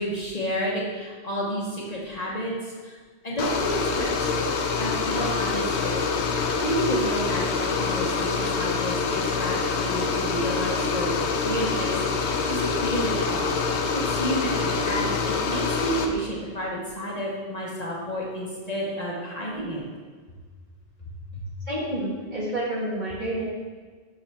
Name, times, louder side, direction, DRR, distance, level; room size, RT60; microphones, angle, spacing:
voice 1, 0.0-2.9 3.2-4.3 4.8-13.5 13.9-19.8 21.3-21.4, equal, 40° left, -4 dB, 1.1 m, -30 dB
sound 1, 3.4-16.1, left 4 dB, 85° left, 1.0 m, -26 dB
voice 2, 21.7-23.5, right 1 dB, 45° right, -6 dB, 1.8 m, -29 dB
7.1 x 5.6 x 3.5 m, 1.5 s
omnidirectional pair, 1.1 m